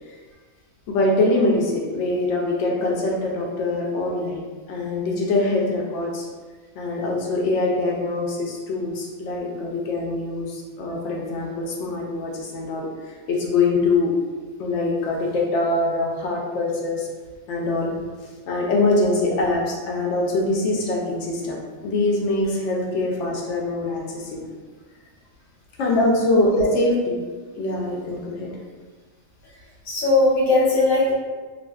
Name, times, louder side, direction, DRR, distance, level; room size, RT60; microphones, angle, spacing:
voice 1, 0.9-4.4 4.7-6.3 6.7-14.1 14.6-17.1 17.5-17.9 18.2-21.6 21.8-24.6 25.8-27.2 27.6-28.5, left 2 dB, 65° left, -1 dB, 0.8 m, -23 dB
voice 2, 29.9-31.1, left 2 dB, 90° left, -6 dB, 1.3 m, -18 dB
2.5 x 2.3 x 2.2 m, 1.4 s
omnidirectional pair, 1.4 m